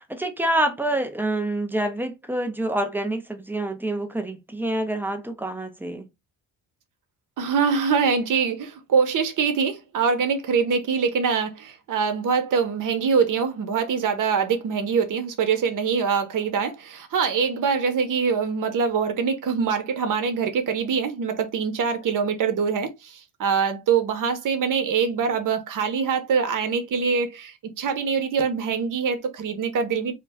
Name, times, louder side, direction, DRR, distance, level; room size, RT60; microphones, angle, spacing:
voice 1, 0.0-6.1, right 1 dB, 5° right, 0.3 m, -27 dB
voice 2, 7.4-30.1, right 6 dB, 50° right, 0.7 m, -24 dB
2.3 x 2.2 x 3.3 m
cardioid pair, 90°, 42 cm